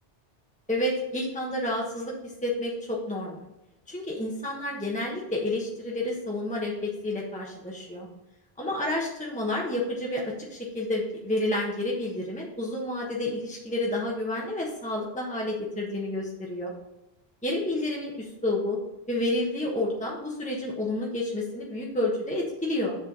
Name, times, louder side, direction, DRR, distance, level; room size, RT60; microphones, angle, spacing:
voice 1, 0.7-3.4 3.9-8.1 8.6-16.7 17.4-18.8 19.1-22.9, left 1 dB, 5° left, -3 dB, 1.2 m, -30 dB
7.4 x 4.5 x 5.4 m, 0.94 s
omnidirectional pair, 1.0 m